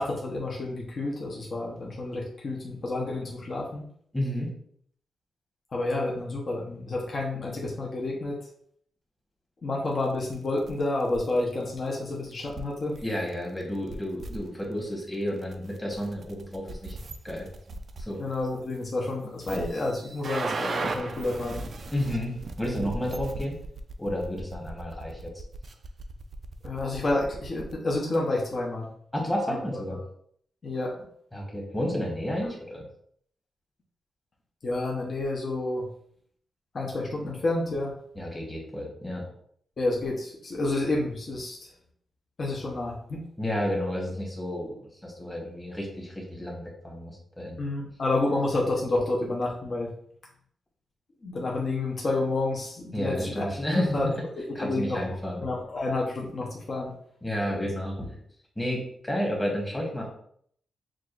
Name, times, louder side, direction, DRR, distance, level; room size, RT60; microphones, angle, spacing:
voice 1, 0.0-3.8 5.7-8.4 9.6-13.0 18.2-21.7 26.6-28.9 29.5-29.6 30.6-30.9 34.6-35.9 36.7-37.9 39.8-41.7 42.4-43.2 47.6-49.9 51.2-53.5 53.7-54.1 54.6-55.0 55.4-56.9, left 2 dB, 40° left, -3 dB, 0.8 m, -29 dB
voice 2, 4.1-4.5 13.0-16.9 17.2-17.5 18.0-18.2 21.9-23.5 24.0-25.3 29.1-30.0 31.3-32.8 38.2-39.3 43.4-44.7 45.0-47.6 52.9-54.1 54.5-55.4 57.2-58.2 58.6-60.1, equal, 10° left, -1 dB, 1.2 m, -31 dB
sound 1, 10.3-10.7 11.0-11.3 11.9-12.0 12.3-13.0 13.3-13.4 13.6-13.7 13.9-19.1 19.4-27.7, right 3 dB, 50° right, 0.4 m, -37 dB
6.1 x 2.4 x 2.5 m, 0.64 s
wide cardioid pair, 125°, 0 cm